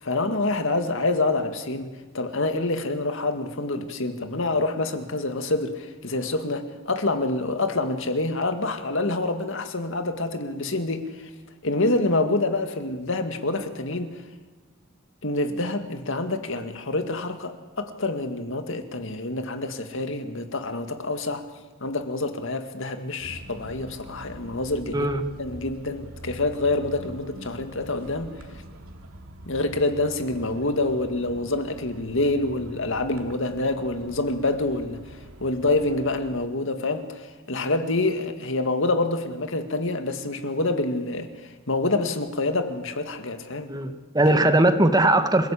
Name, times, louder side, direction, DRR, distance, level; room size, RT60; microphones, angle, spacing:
voice 1, 0.0-11.3 11.6-14.2 15.2-21.5 21.8-25.1 25.4-28.3 29.5-35.0 35.4-43.7, left 2 dB, 65° left, 7 dB, 2.2 m, -27 dB
sound 1, 23.2-36.5, equal, 85° right, 2.6 m, -44 dB
voice 2, 43.7-45.5, right 1 dB, 20° right, 8 dB, 1.3 m, -20 dB
27.5 x 16.5 x 8.5 m, 1.3 s
head